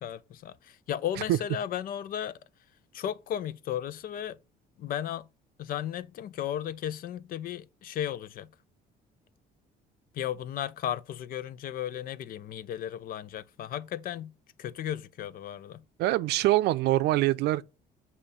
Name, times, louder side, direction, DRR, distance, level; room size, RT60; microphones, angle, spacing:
voice 1, 0.0-2.4 2.9-4.4 4.8-5.3 5.6-8.5 10.1-14.3 14.6-15.8, left 10 dB, 60° left, 0.5 m, -35 dB
voice 2, 16.0-17.6, right 16 dB, 80° right, 0.5 m, -24 dB
7.1 x 2.8 x 5.4 m
cardioid pair, 110°, 17 cm